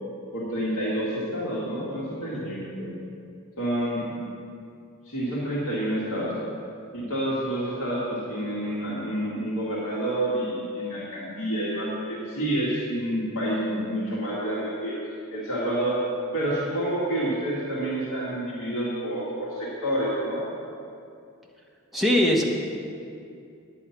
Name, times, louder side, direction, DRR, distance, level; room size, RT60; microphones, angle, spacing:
voice 1, 0.3-2.9 3.6-4.1 5.0-6.3 6.9-15.0 15.3-16.0 16.3-20.5, right 1 dB, 75° left, -8 dB, 2.0 m, -28 dB
voice 2, 21.9-22.4, left 1 dB, ahead, -2 dB, 1.0 m, -21 dB
9.8 x 8.8 x 5.8 m, 2.5 s
head